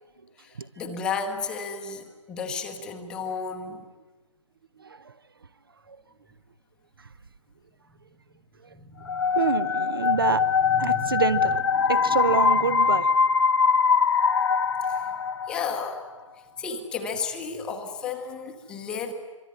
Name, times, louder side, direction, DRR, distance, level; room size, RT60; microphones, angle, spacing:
voice 1, 0.4-3.9 8.7-9.3 10.0-11.2 11.7-12.8 14.8-15.1 15.5-16.0 16.6-19.1, left 5 dB, 5° left, 4 dB, 1.0 m, -34 dB
voice 2, 4.8-5.1 5.9-6.0 9.4-10.4 10.8-11.6 11.9-13.1, right 5 dB, 40° right, 17 dB, 0.8 m, -26 dB
sound 1, 9.1-15.9, left 5 dB, 50° left, 1.0 m, -23 dB
25.0 x 24.0 x 9.7 m, 1.3 s
figure-of-eight pair, 160°, 17 cm